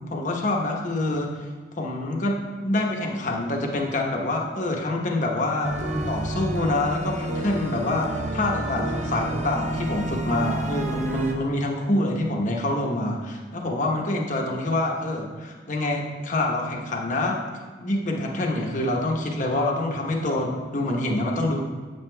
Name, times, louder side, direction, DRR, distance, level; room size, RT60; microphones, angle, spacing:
voice 1, 0.1-1.3 1.7-5.8 6.1-17.4 17.8-21.6, left 1 dB, 45° left, 0 dB, 0.9 m, -26 dB
sound 1, 5.6-11.3, right 1 dB, 40° right, 0.7 m, -30 dB
7.9 x 7.8 x 2.2 m, 1.5 s
head